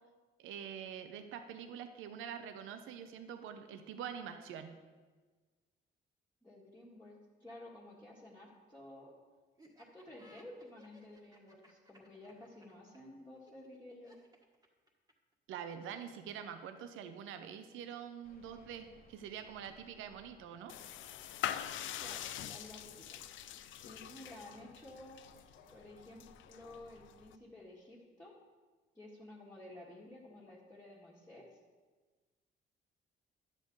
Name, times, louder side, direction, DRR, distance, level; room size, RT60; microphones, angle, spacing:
voice 1, 0.4-4.7 15.5-20.7, right 8 dB, 90° right, 8 dB, 0.7 m, -45 dB
voice 2, 6.4-9.1 9.8-14.1 22.0-23.2 23.7-25.2 25.7-28.3 28.9-31.6, left 1 dB, 10° left, -7 dB, 1.7 m, -53 dB
Laughter, 9.6-15.3, equal, 20° right, 1.5 m, -63 dB
sound 1, 18.2-27.3, left 2 dB, 45° left, 1.3 m, -65 dB
sound 2, 20.7-27.4, left 11 dB, 75° left, 0.5 m, -44 dB
11.0 x 7.4 x 3.9 m, 1.4 s
cardioid pair, 90°, 20 cm